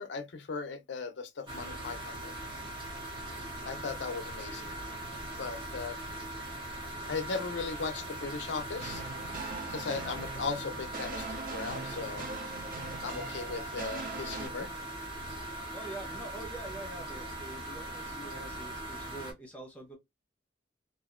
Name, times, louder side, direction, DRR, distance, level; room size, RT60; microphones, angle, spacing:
voice 1, 0.0-2.3 3.7-4.7 5.4-6.0 7.1-9.0 9.7-12.3 13.0-14.7, left 4 dB, 65° left, 0.5 m, -37 dB
sound 1, 1.5-19.3, right 1 dB, 25° right, 0.8 m, -40 dB
sound 2, 8.8-14.5, right 3 dB, 45° right, 0.5 m, -41 dB
voice 2, 15.7-20.0, right 2 dB, 5° left, 0.8 m, -45 dB
2.8 x 2.5 x 2.4 m
head